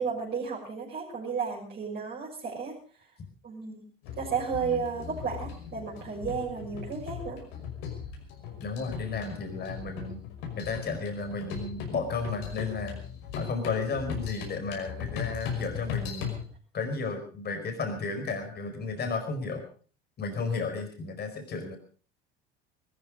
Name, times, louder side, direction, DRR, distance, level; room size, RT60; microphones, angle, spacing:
voice 1, 0.0-2.7 3.4-3.8 4.2-7.4, right 6 dB, 35° right, -5 dB, 6.5 m, -33 dB
sound 1, 4.0-16.4, left 7 dB, 55° left, 5.7 m, -38 dB
voice 2, 8.6-10.2 10.5-13.0 13.3-16.3 16.7-19.6 20.2-21.8, left 4 dB, 35° left, 6 dB, 4.9 m, -33 dB
20.5 x 14.0 x 5.0 m, 0.41 s
figure-of-eight pair, 70°, 30 cm